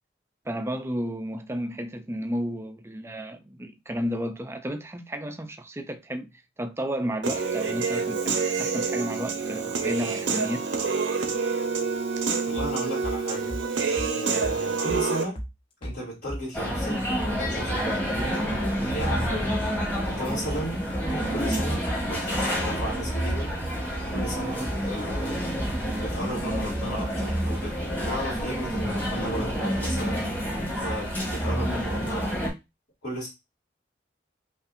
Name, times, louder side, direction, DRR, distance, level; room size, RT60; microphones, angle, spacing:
voice 1, 0.5-10.6, equal, 15° right, 0.4 m, -32 dB
Human voice / Piano, 7.2-15.2, right 5 dB, 85° right, 0.7 m, -27 dB
voice 2, 12.5-13.5 13.9-15.4 15.8-18.1 18.9-19.3 20.0-23.5 24.1-25.5 26.0-27.7 28.0-30.2 30.7-32.3 33.0-33.3, equal, 60° left, 2.2 m, -35 dB
sound 1, 12.6-13.2 13.5-13.7 14.0-14.1 14.4-14.6 14.9-15.0 15.4-15.5 15.8-16.0 16.3-16.9 17.2-17.4 17.7-17.8 18.1-18.3 18.6-18.8 19.1-19.2 19.5-19.7 20.0-20.6 20.9-21.1 21.4-21.6 21.9-22.0 22.3-22.5 22.8-23.0 23.3-23.4 23.7-24.4 24.7-24.8 25.1-25.3 25.6-25.7 26.0-26.2 26.5-26.7 27.0-27.1, equal, 30° left, 0.7 m, -35 dB
sound 2, 16.5-32.5, equal, 10° left, 1.3 m, -28 dB
5.2 x 2.5 x 2.5 m
head